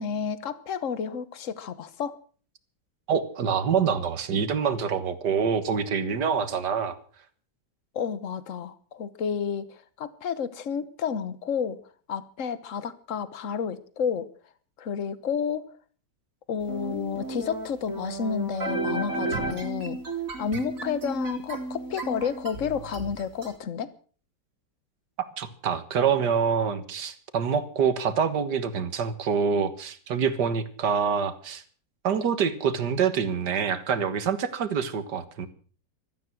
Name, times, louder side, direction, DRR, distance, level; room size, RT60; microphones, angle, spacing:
voice 1, 0.0-2.2 7.9-11.8 12.1-14.3 14.8-15.7 16.5-20.0 20.4-23.9, left 6 dB, 50° left, 15 dB, 1.4 m, -31 dB
voice 2, 3.1-7.0 25.4-31.6 32.0-35.5, right 6 dB, 70° right, 12 dB, 2.0 m, -26 dB
sound 1, 16.7-23.5, right 3 dB, 50° right, 3.1 m, -33 dB
16.0 x 13.5 x 6.1 m, 0.42 s
omnidirectional pair, 1.9 m